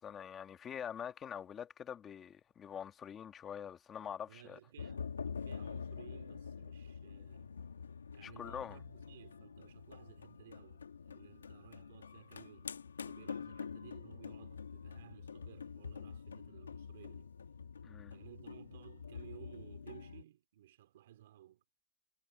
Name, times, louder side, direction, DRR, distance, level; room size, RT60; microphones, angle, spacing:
voice 1, 0.0-4.6 8.2-8.8 17.8-18.2, left 8 dB, 10° left, 1.4 m, -45 dB
voice 2, 4.3-7.6 8.1-17.3 18.1-21.6, right 12 dB, 35° right, 3.3 m, -58 dB
sound 1, 4.8-20.2, left 6 dB, 85° left, 1.7 m, -46 dB
hypercardioid pair, 180°, 0 cm